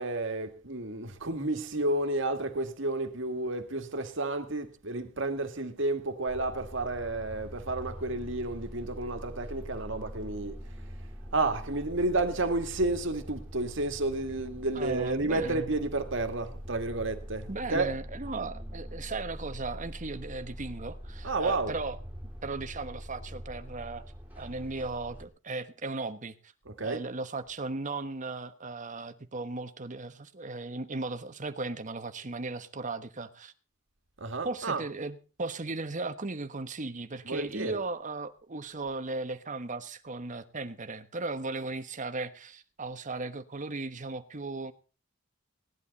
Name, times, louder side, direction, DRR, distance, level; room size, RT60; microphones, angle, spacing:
voice 1, 0.0-10.6 11.3-17.9 21.2-21.8 26.7-27.0 34.2-34.8 37.2-37.8, right 2 dB, 65° right, 1.9 m, -31 dB
sound 1, 6.3-25.3, equal, 10° right, 4.0 m, -43 dB
voice 2, 14.7-15.7 17.5-22.0 22.4-24.0 24.4-26.3 26.8-33.5 34.4-44.7, right 3 dB, 40° right, 1.2 m, -36 dB
18.0 x 11.5 x 4.1 m
head